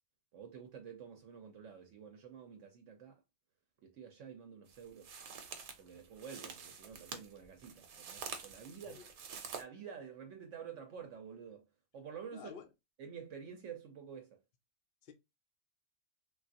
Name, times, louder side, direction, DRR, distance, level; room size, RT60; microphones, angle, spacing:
voice 1, 0.3-3.2 3.8-5.1 5.8-9.0 9.5-11.6 11.9-12.5 13.0-14.4, right 7 dB, 70° right, 0.9 m, -49 dB
sound 1, 4.7-9.6, right 6 dB, 85° right, 1.1 m, -48 dB
voice 2, 12.3-12.7 15.0-15.1, left 7 dB, 75° left, 0.5 m, -50 dB
3.3 x 2.4 x 2.5 m
omnidirectional pair, 1.4 m